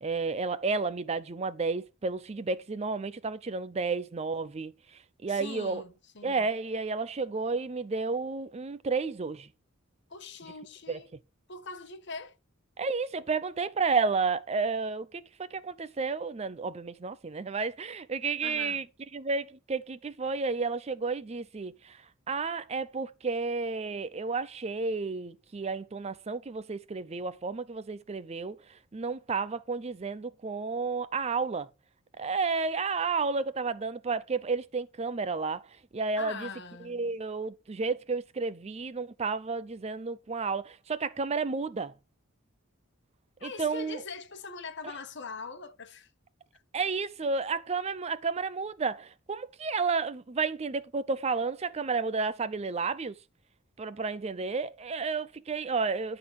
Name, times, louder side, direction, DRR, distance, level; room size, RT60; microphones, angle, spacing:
voice 1, 0.0-4.7 5.2-5.8 6.2-9.5 10.9-11.0 12.8-18.8 19.1-22.0 22.3-28.6 28.9-31.7 32.2-35.6 35.9-36.5 36.8-41.9 43.4-44.0 46.7-53.2 53.8-56.2, right 4 dB, 30° right, 0.4 m, -31 dB
voice 2, 5.3-6.5 10.1-11.1 11.5-12.4 18.4-18.8 36.2-37.1 43.4-46.1 46.5-46.6, left 4 dB, 55° left, 1.2 m, -42 dB
11.0 x 3.9 x 5.9 m
head